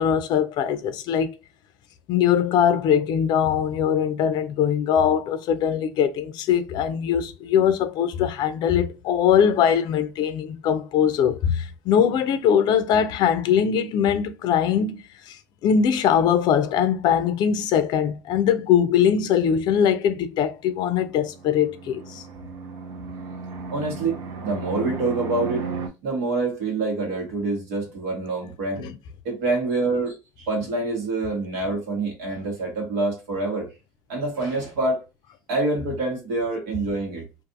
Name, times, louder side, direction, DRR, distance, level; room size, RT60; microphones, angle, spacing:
voice 1, 0.0-1.4 2.1-22.2 28.7-29.0, left 8 dB, 60° left, 0.4 m, -21 dB
Fixed-wing aircraft airplane, 21.0-25.9, right 4 dB, 65° right, 0.6 m, -35 dB
voice 2, 23.7-24.2 24.4-25.7 26.0-28.8 29.2-33.7 34.1-35.0 35.5-37.2, right 3 dB, 80° right, 1.3 m, -26 dB
2.5 x 2.5 x 2.4 m
hypercardioid pair, 75°, 8 cm